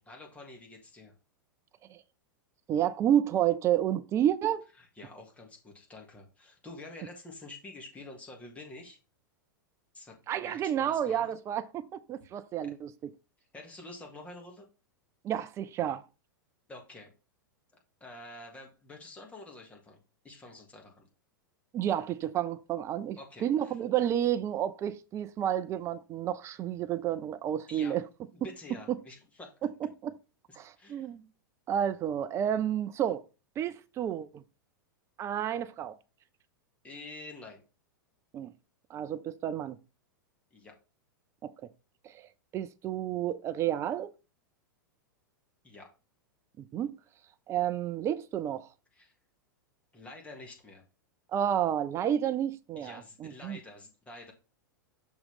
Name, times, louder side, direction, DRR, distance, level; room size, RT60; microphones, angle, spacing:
voice 1, 0.0-1.1 4.8-9.0 9.9-10.2 10.4-11.3 12.6-12.7 13.5-14.6 16.7-17.1 18.0-20.0 20.2-21.1 23.2-23.8 27.7-28.0 28.3-29.5 30.5-31.1 36.8-37.6 40.5-40.7 45.6-45.9 48.9-49.1 49.9-50.8 52.8-54.3, left 2 dB, 10° left, 1.7 m, -48 dB
voice 2, 2.7-4.7 10.3-13.1 15.2-16.0 21.7-28.1 28.9-29.0 29.6-30.1 30.5-31.3 31.7-33.2 33.6-34.4 35.2-36.0 38.3-38.5 38.9-39.8 41.4-41.5 42.0-44.1 46.6-46.9 47.5-48.7 51.3-53.6, right 10 dB, 25° right, 0.5 m, -30 dB
6.3 x 3.0 x 5.5 m
figure-of-eight pair, 95°, 11 cm